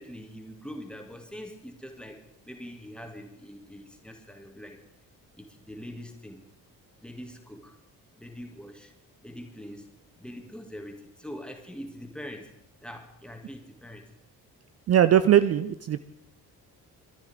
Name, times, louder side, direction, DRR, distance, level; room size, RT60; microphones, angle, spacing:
voice 1, 0.0-4.8 5.4-6.5 7.0-7.8 8.1-8.9 9.2-9.9 10.2-12.5 12.8-14.1, equal, ahead, 3 dB, 2.4 m, -43 dB
voice 2, 14.9-16.0, right 10 dB, 35° right, 13 dB, 0.5 m, -20 dB
22.5 x 13.0 x 3.7 m, 0.81 s
figure-of-eight pair, 40°, 49 cm